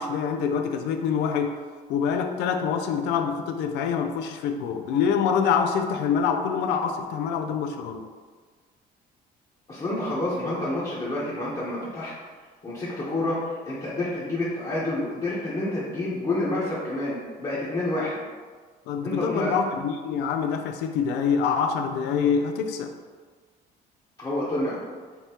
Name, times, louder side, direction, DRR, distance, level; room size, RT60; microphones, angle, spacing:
voice 1, 0.0-1.6 1.9-8.1 18.9-22.9, left 6 dB, 85° left, 6 dB, 0.4 m, -25 dB
voice 2, 9.7-12.1 12.6-18.2 19.0-19.6 24.2-24.8, left 1 dB, 25° left, -9 dB, 1.0 m, -28 dB
5.2 x 2.8 x 2.9 m, 1.5 s
cardioid pair, 110°, 17 cm